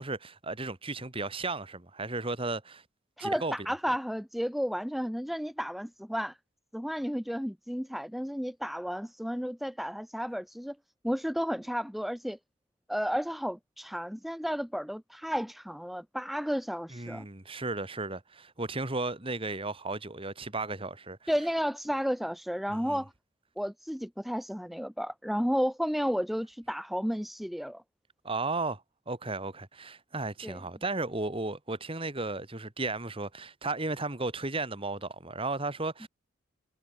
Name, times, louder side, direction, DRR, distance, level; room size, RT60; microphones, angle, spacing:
voice 1, 0.0-2.8 3.2-3.5 16.9-21.3 22.7-23.0 28.2-36.1, right 3 dB, 25° right, 2.2 m, -34 dB
voice 2, 3.2-6.4 6.7-10.8 11.0-12.4 12.9-17.2 21.3-23.1 23.6-27.8 30.4-30.6, equal, ahead, 0.6 m, -32 dB
head